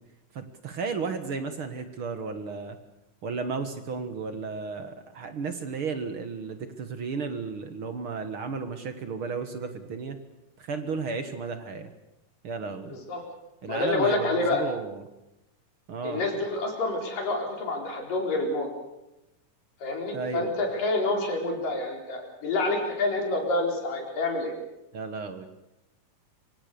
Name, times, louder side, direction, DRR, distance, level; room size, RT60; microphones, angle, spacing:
voice 1, 0.3-2.8 3.2-10.2 10.6-11.9 12.4-13.0 13.6-15.1 15.9-16.2 20.1-20.5 24.9-25.5, right 4 dB, 50° right, 8 dB, 1.9 m, -33 dB
voice 2, 12.9-13.2 13.7-14.6 16.0-18.7 19.8-24.5, left 2 dB, 85° left, 1 dB, 6.0 m, -28 dB
25.0 x 25.0 x 6.9 m, 0.91 s
omnidirectional pair, 3.7 m